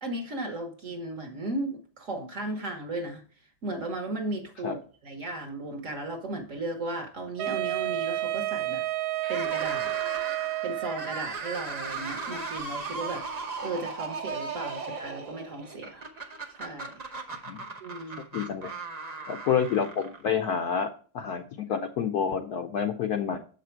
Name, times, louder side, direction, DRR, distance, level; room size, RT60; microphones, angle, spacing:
voice 1, 0.0-3.2 3.6-8.8 9.3-9.9 10.6-13.2 13.6-16.1 16.6-16.9 17.8-18.3, right 2 dB, 50° right, 1.0 m, -35 dB
Wind instrument woodwind instrument, 7.4-11.3, right 16 dB, 85° right, 1.4 m, -30 dB
sound 1, 9.2-20.5, right 4 dB, 65° right, 0.4 m, -37 dB
voice 2, 18.3-18.7 19.3-20.9 21.1-23.4, left 7 dB, 75° left, 0.9 m, -28 dB
7.4 x 5.1 x 4.4 m
omnidirectional pair, 2.2 m